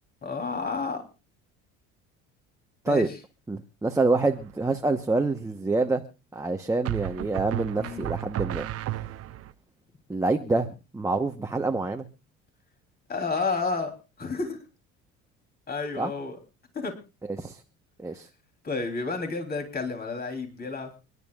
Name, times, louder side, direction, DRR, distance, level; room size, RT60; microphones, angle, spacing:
voice 1, 0.2-1.0 2.9-3.1 7.8-8.1 13.1-13.9 14.2-14.6 15.7-16.4 16.7-16.9 18.6-21.0, left 4 dB, 30° left, 5 dB, 3.3 m, -30 dB
voice 2, 3.5-6.0 6.3-8.7 8.9-9.0 10.1-10.7 10.9-12.1 16.0-16.1 17.4-17.6 18.0-18.3, right 3 dB, 10° right, 4 dB, 1.0 m, -26 dB
sound 1, 4.2-4.7 6.9-9.5, right 14 dB, 50° right, 0.9 m, -33 dB
28.5 x 11.0 x 2.4 m, 0.32 s
supercardioid pair, 105°, 30 cm